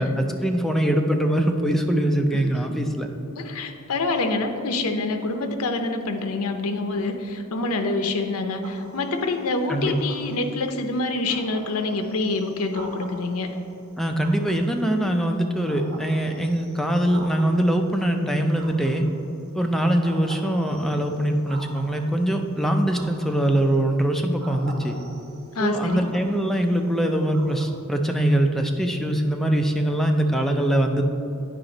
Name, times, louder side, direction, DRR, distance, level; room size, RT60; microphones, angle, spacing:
voice 1, 0.0-3.1 9.7-10.0 14.0-19.0 19.5-25.0 25.6-31.0, right 1 dB, ahead, 3 dB, 0.4 m, -22 dB
voice 2, 3.4-13.6 25.5-26.1, left 2 dB, 75° left, 6 dB, 0.6 m, -26 dB
sound 1, 8.6-9.2 9.8-10.5 11.0-11.1 11.3-13.5 14.2-15.2 15.6-17.8 18.5-19.4 20.0-22.2 22.9-23.7 24.4-26.7 27.3-27.8, right 2 dB, 75° right, 1.1 m, -44 dB
8.8 x 5.0 x 3.9 m, 2.6 s
head